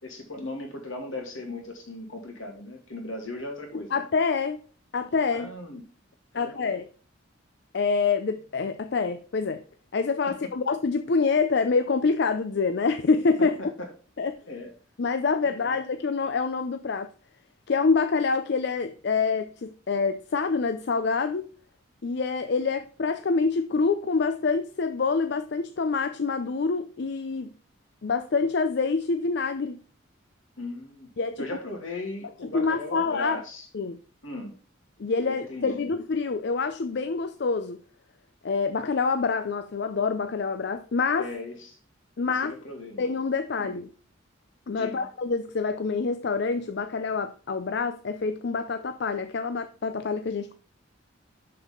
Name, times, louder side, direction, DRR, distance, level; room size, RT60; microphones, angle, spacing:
voice 1, 0.0-4.0 5.3-5.8 6.3-6.7 13.6-13.7 14.5-14.7 15.6-15.8 30.6-31.1 31.4-33.7 34.2-34.6 35.2-35.9 41.2-41.8 42.6-43.0 43.6-43.7 44.8-45.0, left 2 dB, 75° left, 2.5 m, -37 dB
voice 2, 3.7-4.6 4.9-5.5 6.4-6.9 7.7-9.6 9.9-13.6 14.2-14.3 15.0-17.1 17.7-21.5 22.0-27.5 28.0-29.8 31.2-31.4 32.4-33.4 33.7-34.0 35.0-37.8 38.4-41.3 42.2-42.6 43.0-43.9 44.7-50.5, left 4 dB, 55° left, 0.5 m, -26 dB
6.7 x 6.5 x 3.8 m
head